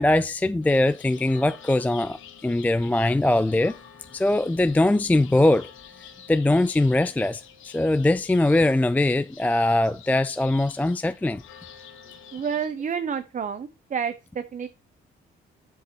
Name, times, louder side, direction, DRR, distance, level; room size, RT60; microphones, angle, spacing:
voice 1, 0.0-2.2 2.4-3.8 4.1-5.7 6.3-11.4, left 2 dB, 10° left, 0.3 m, -21 dB
sound 1, 0.6-12.7, left 9 dB, 85° left, 1.2 m, -48 dB
voice 2, 12.3-14.7, right 7 dB, 40° right, 0.8 m, -29 dB
7.9 x 6.7 x 3.0 m
cardioid pair, 90°, 20 cm